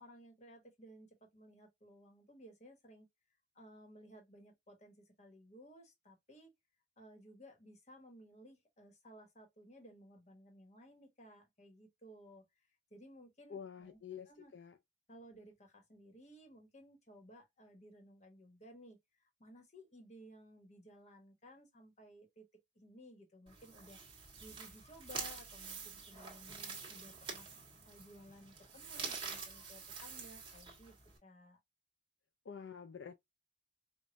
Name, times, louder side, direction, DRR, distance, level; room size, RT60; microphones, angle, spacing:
voice 1, 0.0-3.1 3.5-6.5 7.0-12.4 12.9-14.0 14.3-14.5 15.1-22.4 22.7-24.0 24.4-27.5 27.8-31.0 31.2-31.6, equal, 35° left, 1.3 m, -58 dB
voice 2, 13.5-14.8 32.4-33.1, left 7 dB, 70° left, 0.4 m, -48 dB
sound 1, 23.5-31.2, right 5 dB, 25° right, 1.5 m, -47 dB
5.1 x 2.5 x 2.6 m
head